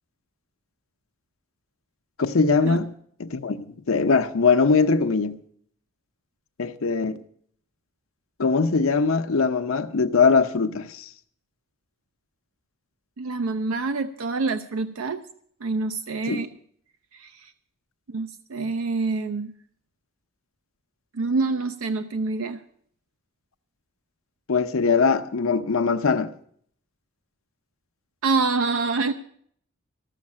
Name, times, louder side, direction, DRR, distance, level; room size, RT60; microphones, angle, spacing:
voice 1, 2.2-2.9 3.2-5.4 6.6-7.2 8.4-11.1 16.3-16.4 24.5-26.3, left 4 dB, 75° left, 0.7 m, -21 dB
voice 2, 13.2-15.2 15.6-16.5 17.1-17.5 18.1-19.5 21.1-22.6 28.2-29.1, right 3 dB, 80° right, 0.5 m, -26 dB
14.0 x 6.4 x 8.4 m
head